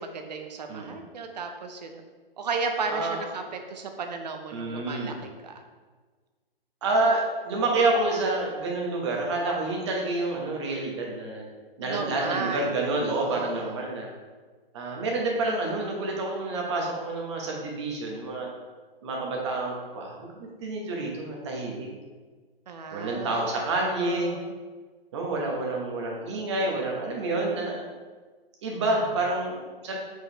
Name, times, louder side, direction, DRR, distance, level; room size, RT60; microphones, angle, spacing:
voice 1, 0.0-2.0 2.4-5.1 5.4-5.6 11.8-13.8 22.7-24.5, right 4 dB, 45° right, 5 dB, 0.7 m, -34 dB
voice 2, 2.9-3.2 4.5-5.1 6.8-11.5 11.8-14.1 14.7-18.5 19.0-21.9 22.9-24.3 25.1-27.8 28.6-30.0, right 2 dB, 30° right, -1 dB, 1.2 m, -28 dB
6.6 x 4.8 x 3.3 m, 1.4 s
hypercardioid pair, 170°, 30 cm